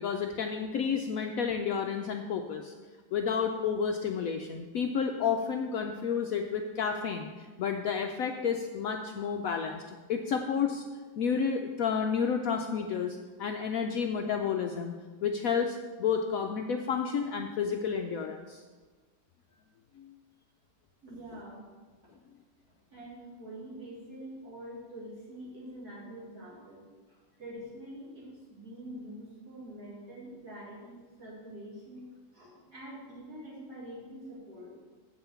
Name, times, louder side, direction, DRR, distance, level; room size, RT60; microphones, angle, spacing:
voice 1, 0.0-2.7 3.1-10.8 11.2-14.9 15.2-18.6 20.0-20.1, left 6 dB, 70° left, 4 dB, 0.8 m, -31 dB
voice 2, 21.0-21.6 22.9-34.7, right 1 dB, 60° right, -7 dB, 3.8 m, -45 dB
8.0 x 5.7 x 6.9 m, 1.4 s
omnidirectional pair, 1.9 m